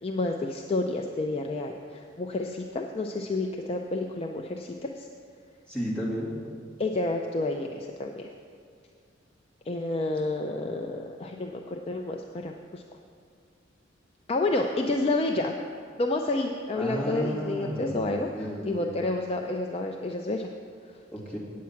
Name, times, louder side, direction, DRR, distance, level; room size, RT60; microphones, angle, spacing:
voice 1, 0.0-5.1 6.8-8.3 9.7-12.8 14.3-15.6 16.0-20.5, left 2 dB, 30° left, 2 dB, 0.4 m, -30 dB
voice 2, 5.7-6.3 16.8-19.0 21.1-21.4, equal, 5° left, -8 dB, 2.4 m, -33 dB
8.6 x 8.4 x 5.7 m, 2.2 s
head